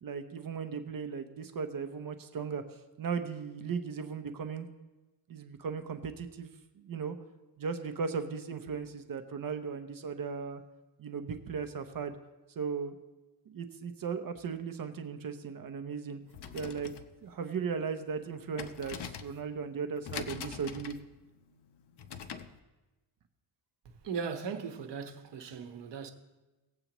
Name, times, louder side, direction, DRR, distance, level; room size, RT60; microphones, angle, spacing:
voice 1, 0.0-2.6 3.0-4.7 5.3-7.2 7.6-10.6 11.0-12.2 12.6-12.9 13.5-16.2 16.5-16.9 17.2-21.0, right 6 dB, 50° right, 0.8 m, -37 dB
sound 1, 16.2-22.6, left 7 dB, 60° left, 0.8 m, -45 dB
voice 2, 24.0-26.1, right 6 dB, 65° right, 1.2 m, -38 dB
19.0 x 8.0 x 3.0 m
cardioid pair, 130°, 45 cm